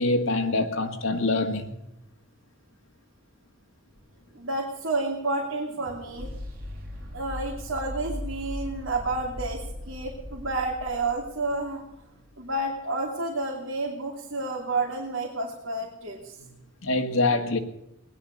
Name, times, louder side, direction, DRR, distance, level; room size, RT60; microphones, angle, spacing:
voice 1, 0.0-1.7 16.8-17.6, left 2 dB, 75° left, 2.0 m, -25 dB
sound 1, 4.0-12.1, left 1 dB, 50° right, 4.5 m, -39 dB
voice 2, 4.3-6.3 7.1-11.8 12.4-16.4, right 2 dB, 70° right, 2.8 m, -30 dB
19.0 x 11.0 x 6.5 m
head